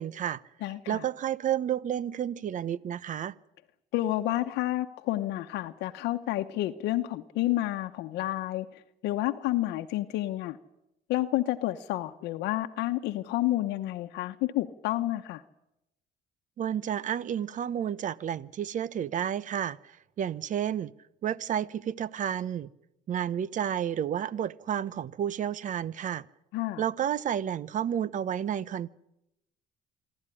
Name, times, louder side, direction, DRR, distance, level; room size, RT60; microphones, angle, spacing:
voice 1, 0.0-0.4 0.9-3.3 16.6-20.9 21.2-22.7 23.1-26.2 26.8-28.9, right 9 dB, 50° right, 20 dB, 0.9 m, -31 dB
voice 2, 0.6-1.1 3.9-10.6 11.1-15.4 26.5-26.8, left 15 dB, 85° left, 7 dB, 1.0 m, -30 dB
26.5 x 12.5 x 9.9 m, 0.85 s
cardioid pair, 110°, 17 cm